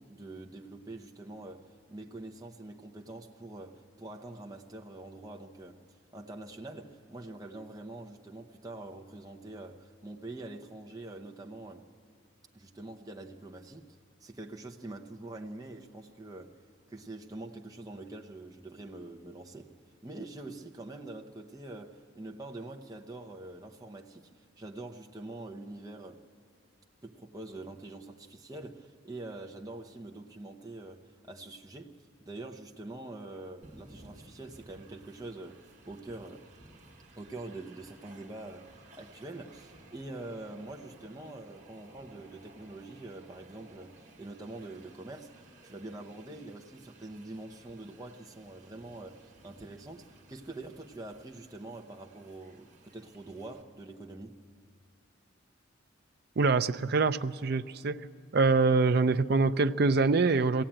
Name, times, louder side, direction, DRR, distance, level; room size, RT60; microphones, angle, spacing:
voice 1, 0.0-5.8 6.1-11.9 12.5-16.6 16.9-19.7 20.0-26.2 27.0-36.4 37.2-45.3 45.6-54.4, right 2 dB, 20° right, 0.8 m, -45 dB
Train, 33.6-53.6, right 2 dB, 35° right, 1.8 m, -57 dB
voice 2, 56.4-58.1 58.3-60.6, right 4 dB, 50° right, 0.5 m, -25 dB
22.0 x 16.5 x 8.8 m
head